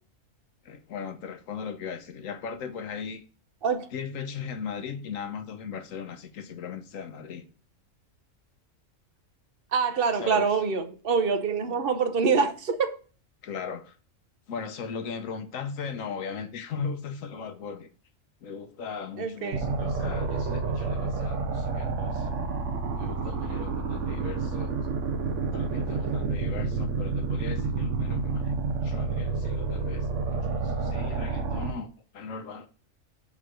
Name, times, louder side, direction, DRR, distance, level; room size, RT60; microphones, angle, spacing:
voice 1, 0.6-3.2 3.9-7.5 10.1-10.5 13.4-14.0 14.5-17.9 18.4-22.5 23.0-24.8 25.5-28.5 28.8-31.9 32.1-32.7, left 6 dB, 85° left, 1.2 m, -38 dB
voice 2, 9.7-13.0 19.2-19.7, right 5 dB, 50° right, 0.9 m, -25 dB
sound 1, 19.5-31.7, right 4 dB, 70° right, 1.1 m, -29 dB
7.0 x 3.3 x 6.2 m
omnidirectional pair, 1.3 m